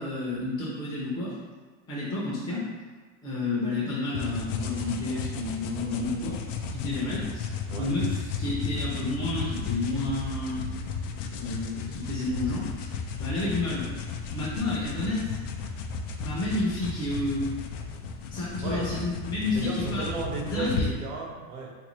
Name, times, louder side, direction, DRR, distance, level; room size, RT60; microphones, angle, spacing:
voice 1, 0.0-1.3 1.9-2.7 3.2-6.4 6.7-10.7 11.3-12.9 13.2-13.9 14.3-15.3 16.2-17.5 18.3-20.1 20.5-20.9, left 2 dB, 10° left, -8 dB, 0.5 m, -30 dB
sound 1, 4.1-20.9, left 5 dB, 70° left, 0.5 m, -34 dB
voice 2, 19.5-21.7, right 4 dB, 85° right, 0 dB, 0.9 m, -34 dB
3.5 x 2.6 x 3.0 m, 1.4 s
supercardioid pair, 160°, 40 cm